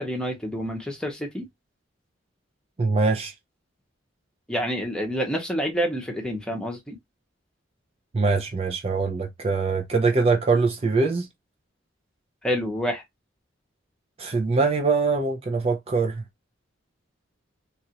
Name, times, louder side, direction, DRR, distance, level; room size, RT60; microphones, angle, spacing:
voice 1, 0.0-1.5 4.5-7.0 12.4-13.0, equal, 5° left, 0.8 m, -28 dB
voice 2, 2.8-3.3 8.1-11.3 14.2-16.2, right 4 dB, 30° right, 0.4 m, -23 dB
2.9 x 2.4 x 2.8 m
head